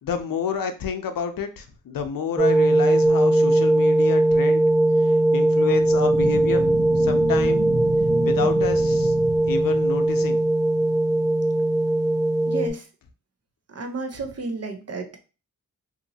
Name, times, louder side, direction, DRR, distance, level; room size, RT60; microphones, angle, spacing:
voice 1, 0.0-4.6 5.0-6.7 7.0-7.7 8.2-9.1 9.5-10.4, left 6 dB, 75° left, 7 dB, 0.5 m, -29 dB
sound 1, 2.4-12.7, right 1 dB, 10° right, 0.7 m, -20 dB
sound 2, 5.6-10.6, right 3 dB, 80° right, 0.8 m, -32 dB
voice 2, 12.5-12.9 13.7-15.2, right 3 dB, 45° right, 5 dB, 0.7 m, -32 dB
2.8 x 2.6 x 2.6 m, 0.33 s
cardioid pair, 65°, 34 cm